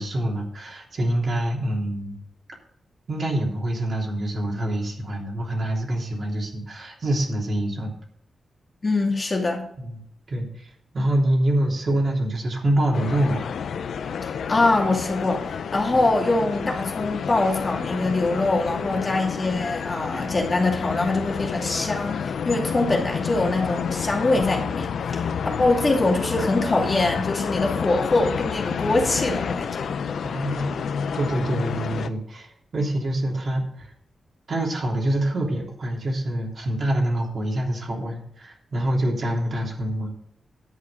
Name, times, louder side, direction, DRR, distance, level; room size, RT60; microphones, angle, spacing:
voice 1, 0.0-2.2 3.1-7.9 9.8-10.0 10.3-10.7 10.9-13.5 30.2-30.8 31.1-33.9 34.5-40.1, right 1 dB, 45° right, -1 dB, 3.4 m, -25 dB
voice 2, 8.8-9.7 14.5-25.3 25.6-29.9, left 2 dB, 30° left, 0 dB, 2.6 m, -23 dB
sound 1, 12.9-32.1, left 7 dB, 80° left, 0.7 m, -29 dB
11.0 x 8.6 x 5.1 m, 0.70 s
wide cardioid pair, 145°, 0 cm